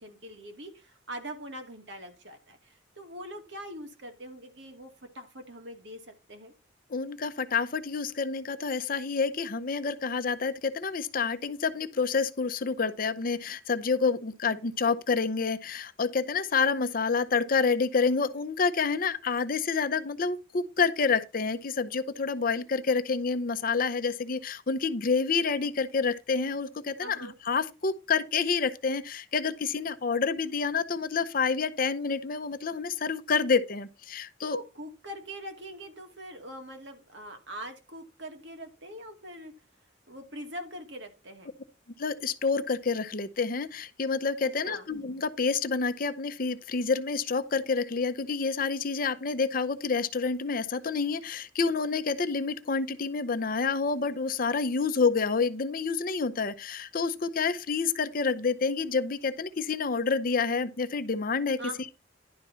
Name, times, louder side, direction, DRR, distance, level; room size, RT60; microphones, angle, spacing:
voice 1, 0.0-6.5 27.0-27.3 34.4-39.5 40.1-41.5 44.4-44.9 61.6-61.9, right 1 dB, 65° right, 2.2 m, -43 dB
voice 2, 6.9-34.6 42.0-61.6, left 5 dB, 50° left, 0.7 m, -28 dB
11.0 x 4.3 x 5.5 m
head